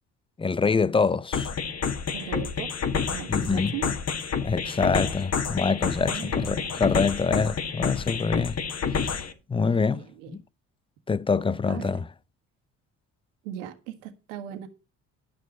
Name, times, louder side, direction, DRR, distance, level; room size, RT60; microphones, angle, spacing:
voice 1, 0.4-1.5 3.3-3.8 4.4-8.6 8.9-9.2 9.5-10.1 10.3-10.4 11.1-12.0, left 5 dB, 15° left, 0.5 m, -25 dB
sound 1, 1.3-9.3, left 6 dB, 45° left, 1.8 m, -29 dB
voice 2, 2.1-2.7 3.1-3.9 6.0-7.3 9.6-10.4 11.7-12.0 13.4-14.7, right 11 dB, 90° right, 1.5 m, -39 dB
11.0 x 6.1 x 5.3 m
supercardioid pair, 65°, 36 cm